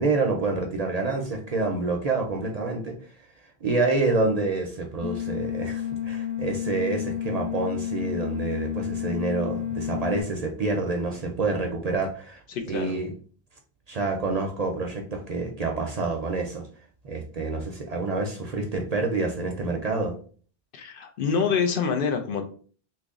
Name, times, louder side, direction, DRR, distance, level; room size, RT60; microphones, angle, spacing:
voice 1, 0.0-3.0 3.6-13.1 13.9-16.6 17.0-20.1, right 3 dB, 50° right, 2 dB, 0.5 m, -27 dB
sound 1, 5.0-10.2, left 10 dB, ahead, 0.6 m, -31 dB
voice 2, 12.5-12.9 20.7-22.4, left 6 dB, 65° left, 4 dB, 0.7 m, -26 dB
2.9 x 2.6 x 3.6 m, 0.43 s
omnidirectional pair, 1.0 m